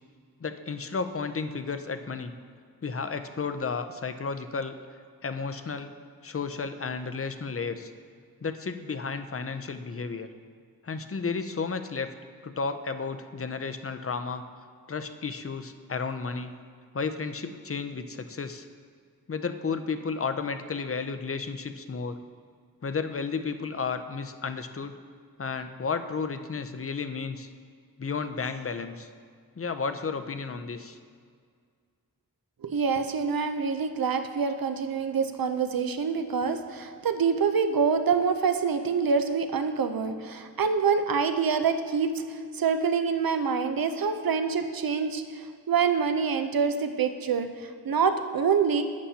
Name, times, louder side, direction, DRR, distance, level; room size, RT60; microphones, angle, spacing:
voice 1, 0.4-2.3 2.8-4.7 5.2-5.9 6.2-7.9 8.4-10.3 10.8-12.1 12.4-14.4 14.9-16.5 16.9-18.7 19.3-22.2 22.8-25.0 25.4-27.5 28.0-29.1 29.6-31.0, left 5 dB, 40° left, 9 dB, 0.6 m, -32 dB
voice 2, 32.6-48.8, right 5 dB, 70° right, 8 dB, 0.6 m, -26 dB
11.5 x 8.5 x 2.8 m, 2.1 s
wide cardioid pair, 50°, 37 cm